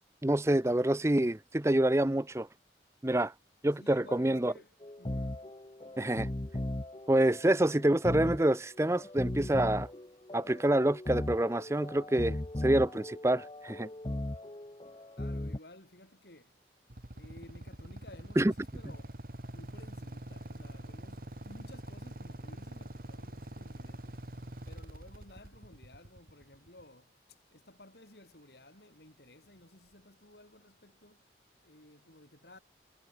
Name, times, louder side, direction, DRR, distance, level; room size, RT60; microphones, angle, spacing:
voice 1, 0.2-2.5 3.0-3.3 3.6-4.5 6.0-6.3 7.1-9.9 10.3-13.9 18.4-18.5, right 1 dB, 15° right, 0.6 m, -27 dB
voice 2, 3.8-5.4 15.2-16.5 17.1-19.2 19.5-24.2 24.7-31.2 31.6-32.6, left 1 dB, 65° left, 4.6 m, -55 dB
sound 1, 4.8-15.6, left 1 dB, 25° left, 0.8 m, -38 dB
Motorcycle / Idling, 16.9-26.8, right 1 dB, 55° right, 2.1 m, -45 dB
head